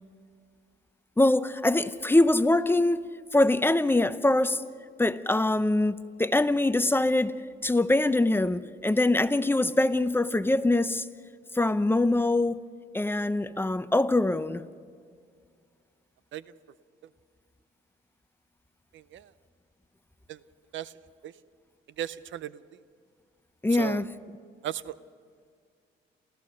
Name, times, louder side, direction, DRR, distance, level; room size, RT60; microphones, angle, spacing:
voice 1, 1.2-3.0 3.3-4.6 5.0-11.0 11.5-12.6 12.9-14.6 23.6-24.1, left 2 dB, 10° left, 0.7 m, -23 dB
voice 2, 18.9-19.3 20.3-20.4 20.7-20.9 21.2-21.3 22.0-22.6 23.7-24.1 24.6-24.9, right 11 dB, 75° right, 0.6 m, -36 dB
27.5 x 15.0 x 6.4 m
cardioid pair, 90°, 20 cm